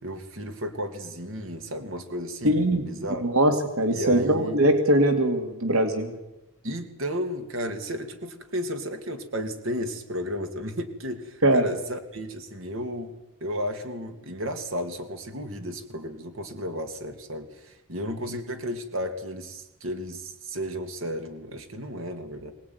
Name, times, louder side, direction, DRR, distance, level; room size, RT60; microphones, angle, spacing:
voice 1, 0.0-3.2 3.9-4.6 6.6-13.1 13.4-22.5, equal, 70° right, 7 dB, 2.8 m, -33 dB
voice 2, 2.4-2.9 3.2-6.1 11.4-11.7, right 1 dB, 85° right, 6 dB, 2.6 m, -21 dB
24.0 x 19.0 x 9.6 m, 0.97 s
head